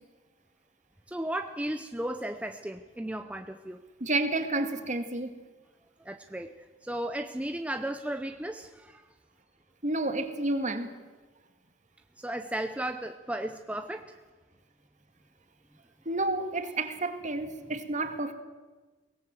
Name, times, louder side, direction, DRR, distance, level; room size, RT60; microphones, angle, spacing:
voice 1, 1.1-3.8 6.0-6.5 6.8-9.0 12.2-14.1, right 1 dB, 5° right, 7 dB, 0.7 m, -35 dB
voice 2, 4.0-5.3 9.8-10.9 16.1-18.3, right 2 dB, 40° right, 7 dB, 2.0 m, -30 dB
23.0 x 18.0 x 7.6 m, 1.3 s
head